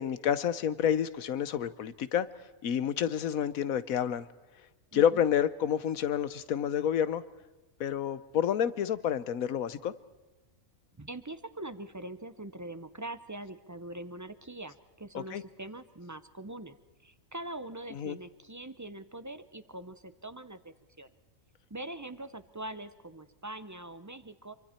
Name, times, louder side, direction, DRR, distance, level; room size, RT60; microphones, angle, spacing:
voice 1, 0.0-2.3 2.6-4.3 4.9-7.2 7.8-9.9 15.1-15.4 17.9-18.2, left 9 dB, 85° left, 16 dB, 1.3 m, -29 dB
voice 2, 4.9-5.2 11.0-16.8 17.0-21.1 21.7-24.5, right 1 dB, 20° right, 13 dB, 0.6 m, -43 dB
26.0 x 24.5 x 4.4 m, 1.2 s
omnidirectional pair, 1.4 m